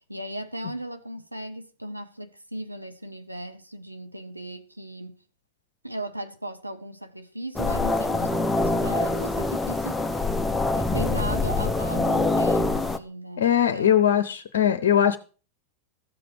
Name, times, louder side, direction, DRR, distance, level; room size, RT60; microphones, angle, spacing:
voice 1, 0.0-5.2 5.8-10.3 10.8-14.0, right 1 dB, 85° right, 0.9 m, -37 dB
sound 1, 7.6-13.0, left 2 dB, 10° left, 0.8 m, -24 dB
voice 2, 13.4-15.2, left 9 dB, 60° left, 0.8 m, -20 dB
13.5 x 7.7 x 4.8 m
figure-of-eight pair, 90°, 0 cm